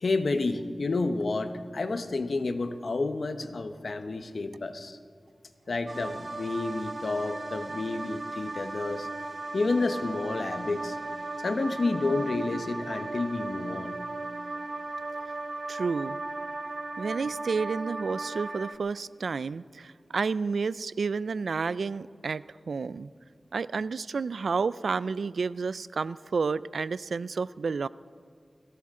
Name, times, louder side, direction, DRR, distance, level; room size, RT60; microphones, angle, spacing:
voice 1, 0.0-5.0 5.7-9.1 9.5-11.0 11.4-14.0, left 3 dB, 75° left, 9 dB, 1.0 m, -30 dB
sound 1, 5.9-18.8, right 2 dB, 50° right, 0.8 m, -36 dB
voice 2, 15.7-16.2 17.0-23.1 23.5-27.9, right 4 dB, 90° right, 18 dB, 0.3 m, -30 dB
21.5 x 17.0 x 3.7 m, 2.1 s
cardioid pair, 45°, 0 cm